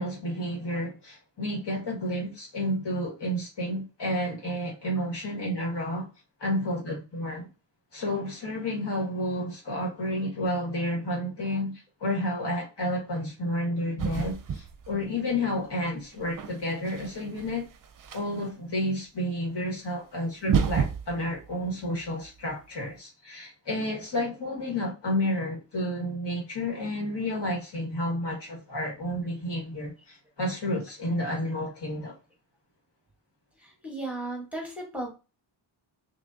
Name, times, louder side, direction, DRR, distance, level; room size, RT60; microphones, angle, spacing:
voice 1, 0.0-6.1 6.4-7.5 7.9-11.7 12.0-17.7 18.1-32.1, left 1 dB, 60° left, 1.8 m, -31 dB
sound 1, 14.0-15.2 16.0-18.5 19.9-20.0 20.4-22.5, right 7 dB, 45° right, 0.5 m, -31 dB
voice 2, 33.6-35.1, right 2 dB, 5° right, 1.3 m, -35 dB
6.2 x 2.8 x 2.7 m
wide cardioid pair, 135°, 46 cm